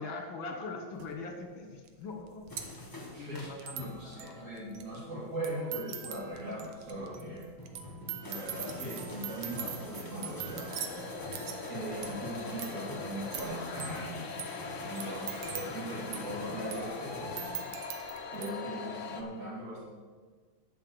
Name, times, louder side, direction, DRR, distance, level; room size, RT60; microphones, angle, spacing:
voice 1, 0.0-2.5 3.2-4.4 15.2-15.5, left 3 dB, 70° left, 3 dB, 2.1 m, -42 dB
sound 1, 1.0-1.1 1.9-18.5, right 9 dB, 90° right, 1.8 m, -44 dB
sound 2, 2.5-4.2 4.8-5.0 6.5-17.6, left 1 dB, 10° left, 1.1 m, -46 dB
voice 2, 3.1-7.5 8.2-10.7 11.7-14.4 14.8-17.5 18.3-19.8, right 1 dB, 40° right, -5 dB, 3.1 m, -40 dB
sound 3, 10.7-19.2, left 4 dB, 50° left, 1.0 m, -41 dB
11.5 x 5.3 x 8.0 m, 1.5 s
omnidirectional pair, 2.2 m